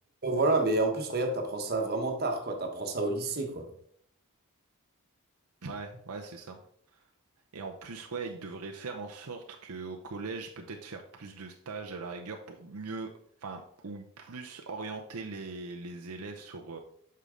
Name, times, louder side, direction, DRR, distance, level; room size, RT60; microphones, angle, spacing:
voice 1, 0.2-3.7, right 2 dB, 45° right, 3 dB, 1.2 m, -29 dB
voice 2, 5.6-6.6 7.5-13.1 13.4-16.8, right 4 dB, 75° right, 2 dB, 0.7 m, -40 dB
8.3 x 5.7 x 3.8 m, 0.65 s
head